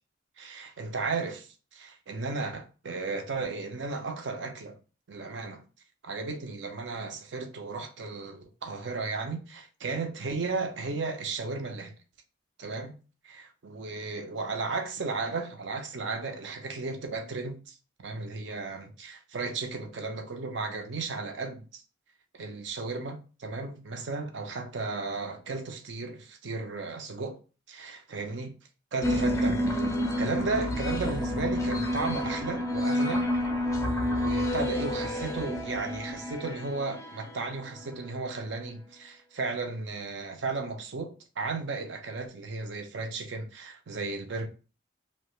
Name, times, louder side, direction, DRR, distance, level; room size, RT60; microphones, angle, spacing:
voice 1, 0.4-4.8 5.1-5.6 6.0-11.9 12.6-12.9 13.2-17.8 18.0-21.8 22.3-27.4 27.7-28.5 28.9-29.6 30.2-33.3 34.1-44.5, right 3 dB, 65° right, 0.5 m, -34 dB
sound 1, 29.0-38.0, left 1 dB, 15° left, 0.4 m, -29 dB
2.7 x 2.1 x 2.9 m
head